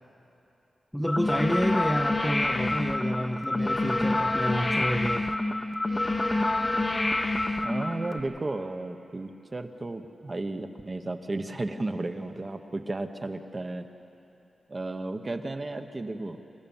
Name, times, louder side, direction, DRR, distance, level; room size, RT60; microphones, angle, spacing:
voice 1, 0.9-5.3, equal, ahead, 5 dB, 0.7 m, -29 dB
sound 1, 1.1-8.2, left 2 dB, 25° left, 0.9 m, -27 dB
voice 2, 7.6-13.9 14.7-16.4, right 2 dB, 30° right, 6 dB, 1.1 m, -34 dB
26.5 x 14.5 x 7.2 m, 2.8 s
wide cardioid pair, 100°, 0 cm